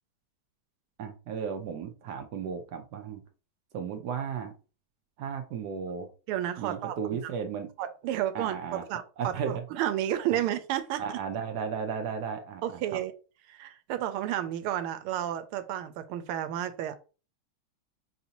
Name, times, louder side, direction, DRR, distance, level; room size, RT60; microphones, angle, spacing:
voice 1, 1.0-3.2 3.7-4.5 5.2-6.1 6.6-7.7 8.3-8.8 9.2-9.6 10.3-10.4 11.0-13.0, right 6 dB, 70° right, 1.0 m, -34 dB
voice 2, 6.3-6.9 7.8-11.2 12.6-13.1 13.5-17.0, right 11 dB, 90° right, 1.5 m, -31 dB
5.7 x 2.6 x 2.8 m
omnidirectional pair, 2.3 m